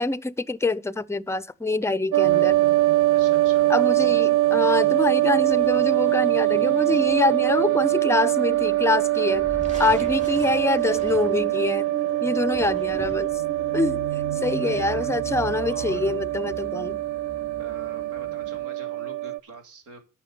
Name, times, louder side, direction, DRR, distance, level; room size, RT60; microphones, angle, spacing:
voice 1, 0.0-2.6 3.7-9.5 9.8-11.9 12.2-13.3 13.7-14.1 14.4-17.0, left 3 dB, 10° left, 0.5 m, -25 dB
sound 1, 2.1-19.4, right 16 dB, 70° right, 0.5 m, -23 dB
voice 2, 2.1-2.5 3.1-3.7 10.2-10.4 14.6-15.2 15.6-16.1 16.6-16.7 17.6-20.0, right 3 dB, 90° right, 2.7 m, -44 dB
sound 2, 2.2-18.6, right 5 dB, 45° right, 1.7 m, -40 dB
sound 3, 9.3-11.9 12.4-13.5, right 1 dB, 25° right, 2.9 m, -40 dB
9.9 x 6.0 x 7.0 m
cardioid pair, 90°, 30 cm